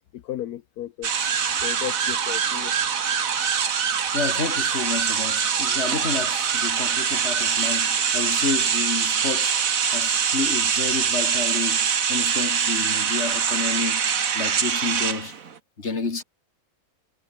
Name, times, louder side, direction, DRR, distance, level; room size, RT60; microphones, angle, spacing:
voice 1, 0.1-1.3 1.6-2.7, left 12 dB, 85° left, 1.3 m, -34 dB
sound 1, 1.0-15.6, right 7 dB, 65° right, 1.8 m, -24 dB
voice 2, 4.1-9.6 9.9-15.4 15.8-16.2, left 4 dB, 45° left, 2.8 m, -30 dB
omnidirectional pair, 1.6 m